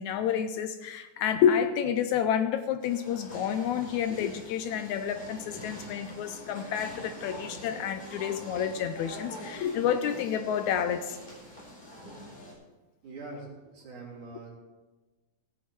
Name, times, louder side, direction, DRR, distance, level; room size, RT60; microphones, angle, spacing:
voice 1, 0.0-11.2, left 8 dB, 80° left, 9 dB, 1.8 m, -29 dB
sound 1, 2.8-12.5, equal, 15° left, 4.0 m, -44 dB
voice 2, 13.0-14.5, right 3 dB, 70° right, -3 dB, 4.5 m, -43 dB
16.5 x 8.3 x 4.4 m, 1.2 s
omnidirectional pair, 3.6 m